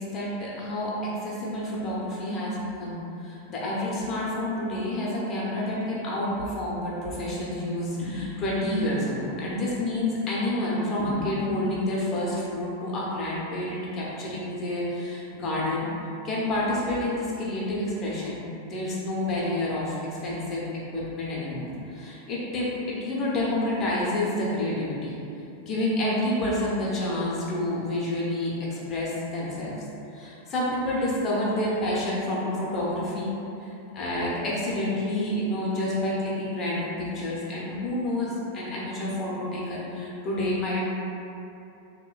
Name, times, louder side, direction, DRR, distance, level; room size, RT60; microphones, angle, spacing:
voice 1, 0.0-15.9 16.2-18.4 18.6-20.7 20.9-25.1 25.6-29.7 30.1-33.3 33.6-40.9, left 1 dB, 30° left, -6 dB, 0.6 m, -29 dB
2.9 x 2.1 x 2.3 m, 2.8 s
figure-of-eight pair, 90°, 0 cm